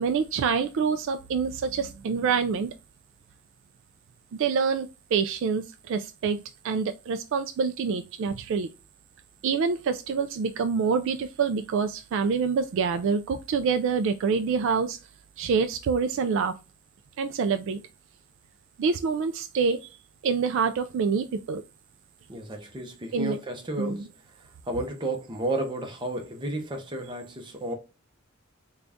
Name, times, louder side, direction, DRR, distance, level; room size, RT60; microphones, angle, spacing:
voice 1, 0.0-2.7 4.3-6.4 6.6-8.7 9.4-15.0 15.4-16.5 17.2-17.8 18.8-20.0 20.2-21.6 23.1-23.4 23.8-24.0, right 5 dB, 65° right, 0.3 m, -26 dB
voice 2, 22.3-24.1 24.4-27.7, right 1 dB, 20° right, 0.8 m, -32 dB
3.8 x 2.3 x 3.4 m
head